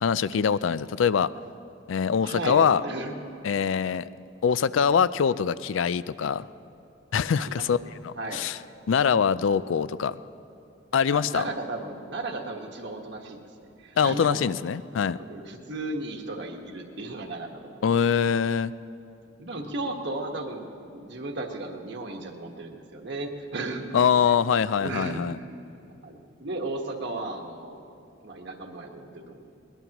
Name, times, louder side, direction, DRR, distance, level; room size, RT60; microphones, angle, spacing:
voice 1, 0.0-1.3 1.9-2.8 3.4-4.1 4.4-6.4 7.1-7.8 8.0-8.6 8.9-10.1 10.9-11.4 14.0-15.2 17.8-18.7 23.9-25.4, left 7 dB, 85° left, 16 dB, 0.4 m, -23 dB
voice 2, 2.2-3.2 7.4-8.4 9.1-9.2 11.1-14.4 15.2-18.2 19.4-24.4 24.8-25.3 26.0-27.8 28.2-29.4, right 2 dB, 65° right, 2 dB, 1.5 m, -35 dB
22.0 x 19.5 x 3.0 m, 2.6 s
head